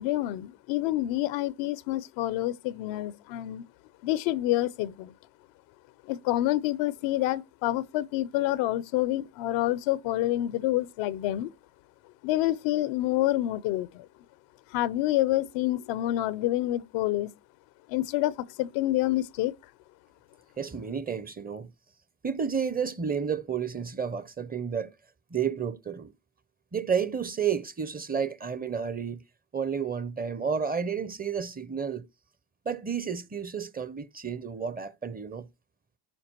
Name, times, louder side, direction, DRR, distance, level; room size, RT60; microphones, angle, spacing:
voice 1, 0.0-3.6 4.0-5.1 6.1-11.5 12.2-13.9 14.7-17.3 17.9-18.3 18.6-19.5, left 15 dB, 85° left, 0.6 m, -27 dB
voice 2, 20.6-21.7 22.2-24.9 25.3-26.1 26.7-29.2 29.5-32.0 32.7-35.5, right 7 dB, 20° right, 0.6 m, -31 dB
12.0 x 6.0 x 2.9 m
supercardioid pair, 75°, 44 cm